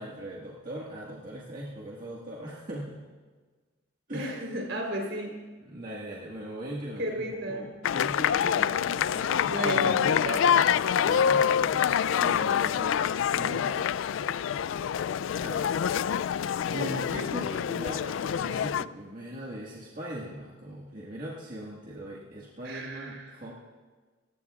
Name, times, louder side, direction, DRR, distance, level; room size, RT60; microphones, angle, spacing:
voice 1, 0.0-3.0 4.1-4.3 5.6-9.6 10.9-13.0 13.3-14.4 15.4-15.7 16.7-23.5, right 1 dB, 45° right, -5 dB, 1.7 m, -40 dB
voice 2, 4.1-5.4 7.0-7.7 9.5-10.5 22.6-23.4, equal, 70° right, 1 dB, 3.8 m, -33 dB
sound 1, 7.8-18.8, left 8 dB, 80° left, 0.3 m, -26 dB
27.0 x 16.0 x 2.4 m, 1.4 s
head